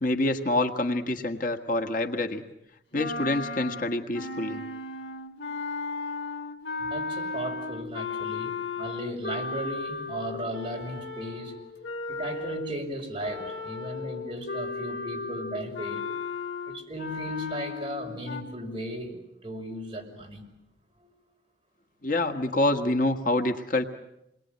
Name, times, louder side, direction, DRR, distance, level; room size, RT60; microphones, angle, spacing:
voice 1, 0.0-2.4 2.9-4.6 22.0-23.9, left 2 dB, 50° left, 5 dB, 1.6 m, -26 dB
sound 1, 2.9-12.8 13.2-18.4, left 3 dB, 90° left, 2.4 m, -35 dB
voice 2, 6.8-11.5 12.1-16.1 16.7-19.2 19.4-20.4 21.0-21.1, equal, 30° right, 0 dB, 6.3 m, -36 dB
28.0 x 22.0 x 9.3 m, 0.85 s
head